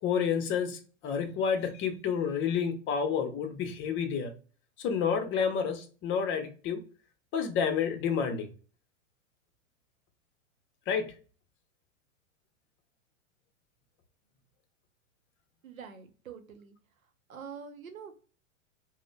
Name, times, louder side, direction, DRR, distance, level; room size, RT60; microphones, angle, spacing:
voice 1, 0.0-4.3 4.8-6.8 7.3-8.5 10.9-11.1, left 7 dB, 30° left, 7 dB, 0.8 m, -30 dB
voice 2, 15.6-16.7 17.3-18.2, right 6 dB, 85° right, 8 dB, 0.8 m, -45 dB
5.1 x 2.1 x 2.2 m, 0.39 s
hypercardioid pair, 110°, 40 cm